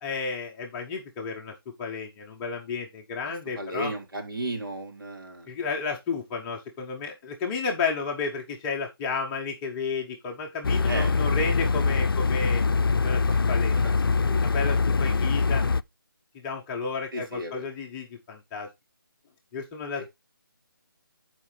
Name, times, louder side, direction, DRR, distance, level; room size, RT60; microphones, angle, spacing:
voice 1, 0.0-3.9 5.5-12.6 13.0-13.9 14.4-15.6 16.4-18.7 19.5-20.1, left 4 dB, 10° left, 0.7 m, -32 dB
voice 2, 3.2-5.5 10.9-11.3 13.3-13.4 14.2-14.4 17.1-17.7, right 1 dB, 70° right, 3.9 m, -34 dB
sound 1, 10.6-15.8, left 4 dB, 75° left, 0.5 m, -23 dB
13.5 x 5.0 x 3.2 m
figure-of-eight pair, 165°, 12 cm